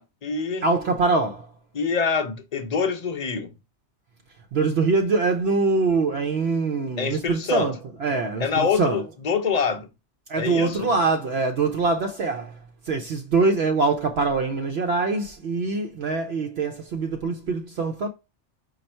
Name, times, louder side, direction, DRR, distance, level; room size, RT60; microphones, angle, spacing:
voice 1, 0.0-0.7 1.7-3.5 7.0-7.7 8.4-9.9 10.3-10.9, left 6 dB, 45° left, 0.6 m, -25 dB
voice 2, 0.6-1.5 4.5-9.0 10.3-12.6 12.9-18.1, right 3 dB, 65° right, 0.8 m, -24 dB
5.2 x 2.4 x 4.3 m
omnidirectional pair, 1.2 m